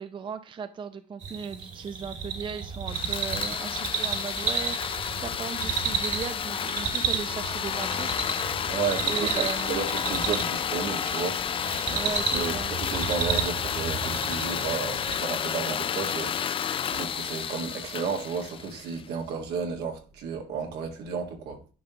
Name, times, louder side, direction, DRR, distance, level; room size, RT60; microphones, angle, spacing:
voice 1, 0.0-8.8 9.1-9.8 11.9-12.7, right 6 dB, 30° right, 0.5 m, -37 dB
sound 1, 1.2-15.2, right 5 dB, 45° right, 1.8 m, -32 dB
sound 2, 2.9-19.1, left 8 dB, 30° left, 0.3 m, -31 dB
voice 2, 8.6-11.4 11.9-12.0 12.3-21.6, right 5 dB, 75° right, 1.7 m, -33 dB
10.0 x 5.5 x 2.9 m
cardioid pair, 110°, 17 cm